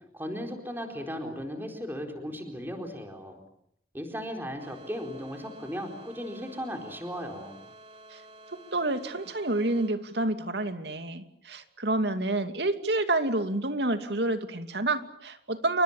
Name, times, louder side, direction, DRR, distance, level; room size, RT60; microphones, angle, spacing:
voice 1, 0.1-3.4 3.9-7.6, equal, 10° right, 3 dB, 4.4 m, -36 dB
sound 1, 4.6-9.9, right 1 dB, 35° right, 4.1 m, -51 dB
voice 2, 8.7-15.8, right 2 dB, 75° right, 8 dB, 2.5 m, -28 dB
29.0 x 25.0 x 7.4 m, 0.74 s
head